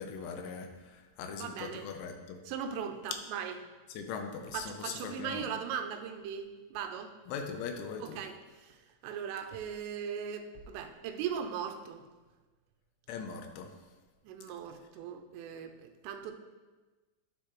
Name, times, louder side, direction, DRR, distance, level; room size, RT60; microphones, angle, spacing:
voice 1, 0.0-2.4 3.9-5.5 7.3-8.2 13.1-13.7, left 5 dB, 80° left, 5 dB, 3.1 m, -40 dB
voice 2, 1.4-1.8 2.5-3.5 4.5-7.1 8.0-12.0 14.2-16.3, right 7 dB, 80° right, 5 dB, 3.2 m, -39 dB
10.0 x 8.7 x 3.1 m, 1.2 s
omnidirectional pair, 5.8 m